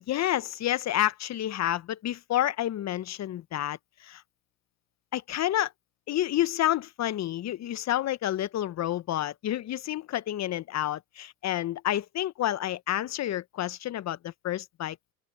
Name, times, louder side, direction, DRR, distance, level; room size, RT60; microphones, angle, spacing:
voice 1, 0.1-4.2 5.1-5.7 6.1-15.1, left 13 dB, 35° left, 1.2 m, -29 dB
open air
hypercardioid pair, 90°, 44 cm